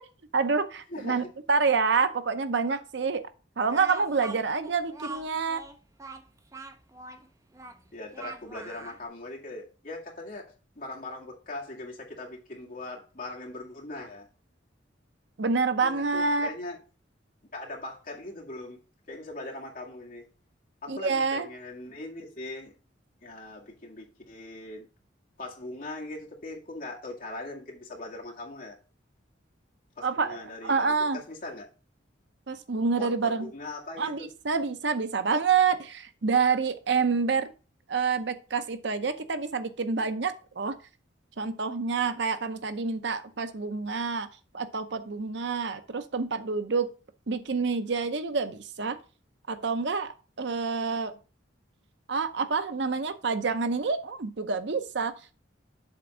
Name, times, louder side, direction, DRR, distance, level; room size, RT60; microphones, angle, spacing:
voice 1, 0.3-3.2 3.6-5.6 15.4-16.5 20.9-21.5 30.0-31.2 32.5-33.5 34.0-37.5 37.9-40.8 41.4-44.3 44.5-46.9 47.3-49.0 49.5-50.1 50.4-51.1 52.1-55.1, right 5 dB, 65° right, 0.7 m, -27 dB
voice 2, 0.9-1.3 7.9-10.5 10.8-14.3 15.8-16.8 17.4-18.8 19.1-20.3 20.8-22.7 23.2-24.9 25.4-28.8 30.0-31.7 33.0-34.3, left 2 dB, 45° left, 2.0 m, -40 dB
Speech, 3.7-9.0, right 3 dB, 15° right, 0.5 m, -43 dB
7.4 x 3.5 x 6.1 m
head